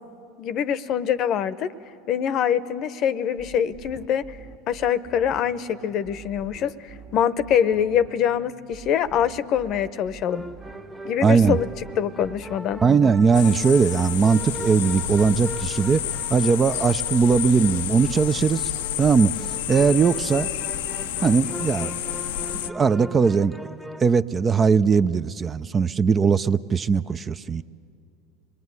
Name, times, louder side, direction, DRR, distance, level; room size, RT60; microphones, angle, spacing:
voice 1, 0.4-1.7 2.1-4.2 4.7-6.7 7.1-10.4 11.0-11.7 12.0-12.8, left 9 dB, 50° left, 15 dB, 0.8 m, -24 dB
sound 1, 3.4-21.9, right 5 dB, 55° right, 1.7 m, -45 dB
sound 2, 10.3-24.0, equal, 5° right, 1.1 m, -40 dB
voice 2, 11.2-11.6 12.8-16.0 16.3-18.7 19.0-19.3 19.7-20.5 21.2-22.0 22.7-23.6 24.0-27.6, right 5 dB, 25° right, 13 dB, 0.6 m, -19 dB
sound 3, 13.3-22.7, left 12 dB, 75° left, 0.6 m, -30 dB
26.5 x 20.5 x 9.7 m, 2.5 s
hypercardioid pair, 95°, 0 cm